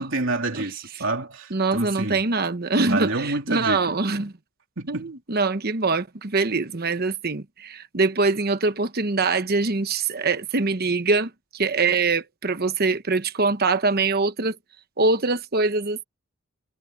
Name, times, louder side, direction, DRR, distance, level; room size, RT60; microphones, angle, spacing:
voice 1, 0.0-2.2 2.9-4.0 4.8-5.1, right 2 dB, 60° right, 3.5 m, -28 dB
voice 2, 1.5-4.3 4.9-14.6 15.0-16.0, right 3 dB, 45° right, 1.1 m, -23 dB
head